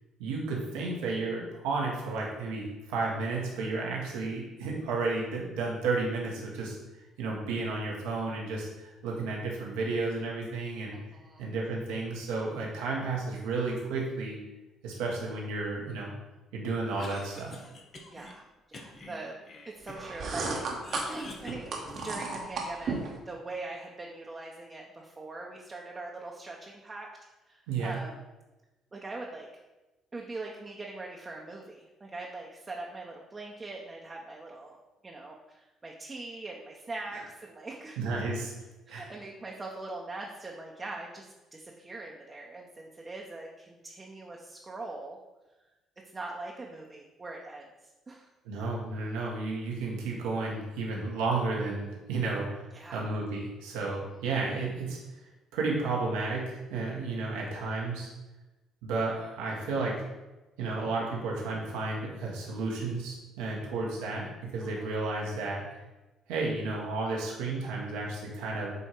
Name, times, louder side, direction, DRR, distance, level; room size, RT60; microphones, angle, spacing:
voice 1, 0.2-11.0 11.4-14.4 14.8-16.1 16.5-17.6 27.7-28.0 38.0-38.5 38.9-39.1 48.4-55.0 55.5-58.1 58.8-60.0 60.6-65.6 66.3-68.7, right 3 dB, 80° right, -2 dB, 1.3 m, -32 dB
voice 2, 10.9-11.4 18.1-18.4 18.7-19.4 19.6-20.7 21.1-21.6 22.0-23.0 23.2-27.1 27.4-28.2 28.9-29.5 30.1-34.8 35.0-38.0 38.9-45.2 46.1-47.6 48.1-48.3 52.7-53.0 64.6-65.0, right 2 dB, 30° right, -1 dB, 1.0 m, -42 dB
Cough, 16.8-18.3 18.7-20.2 20.5-22.4, left 2 dB, 45° left, 1.2 m, -47 dB
sound 1, 19.9-23.2, right 3 dB, 60° right, 1.2 m, -34 dB
8.1 x 2.8 x 4.7 m, 1.1 s
hypercardioid pair, 55°, 0 cm